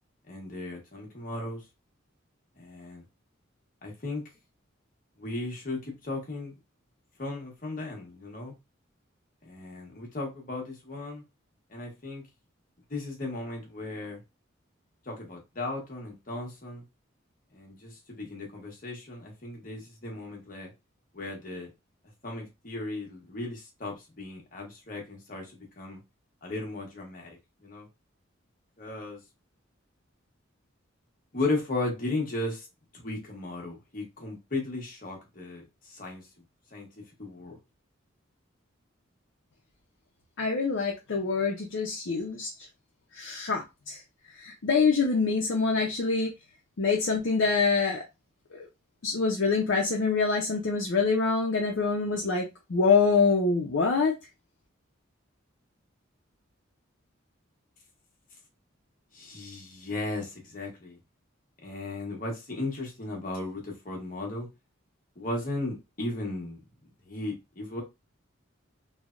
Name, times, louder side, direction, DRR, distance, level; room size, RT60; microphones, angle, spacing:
voice 1, 0.3-1.6 2.6-3.0 3.8-4.2 5.2-6.5 7.2-8.5 9.4-11.2 11.7-12.2 12.9-14.2 15.1-16.8 17.5-20.7 21.1-21.7 22.2-26.0 26.4-27.3 27.6-27.9 28.8-29.2 31.3-32.7 32.9-36.3 36.7-37.6 59.1-61.0 61.6-64.5 65.2-66.6 67.1-67.8, left 2 dB, 45° left, 0.9 m, -36 dB
voice 2, 40.4-42.5 43.1-44.0 44.3-46.3 46.8-48.0 48.5-48.7 49.0-54.1, left 4 dB, 70° left, 0.5 m, -25 dB
3.2 x 2.1 x 2.4 m
head